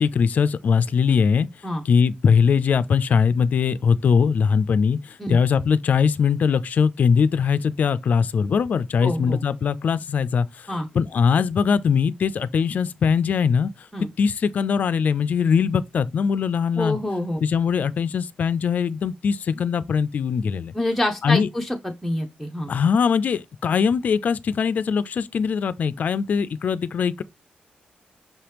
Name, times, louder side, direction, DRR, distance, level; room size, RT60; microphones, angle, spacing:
voice 1, 0.0-1.5 1.8-10.7 10.9-13.9 14.2-17.0 17.4-20.7 21.2-21.5 22.7-27.2, left 6 dB, 60° left, 0.3 m, -21 dB
voice 2, 9.0-9.4 10.7-10.9 13.9-14.1 16.8-17.4 20.7-22.7, left 1 dB, ahead, 0.6 m, -26 dB
5.4 x 2.9 x 3.2 m
wide cardioid pair, 110°, 3 cm